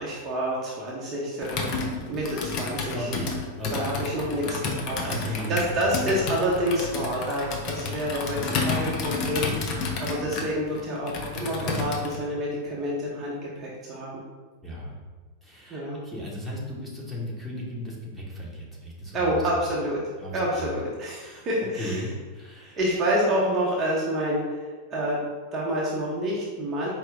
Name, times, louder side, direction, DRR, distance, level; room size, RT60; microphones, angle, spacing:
voice 1, 0.0-1.6 2.1-3.1 3.7-5.0 5.5-9.5 10.0-14.2 15.7-16.0 19.1-20.0 20.3-22.0 22.6-25.2 25.5-26.9, equal, 30° right, -5 dB, 0.8 m, -28 dB
Computer keyboard, 1.4-12.2, left 4 dB, 40° left, 0.7 m, -31 dB
voice 2, 2.9-3.3 3.6-3.8 4.4-4.7 5.0-6.0 14.6-14.9 15.4-19.7 20.2-20.7 21.2-21.4 21.8-22.8, equal, ahead, -6 dB, 1.1 m, -35 dB
4.6 x 2.9 x 3.5 m, 1.4 s
figure-of-eight pair, 90°, 0 cm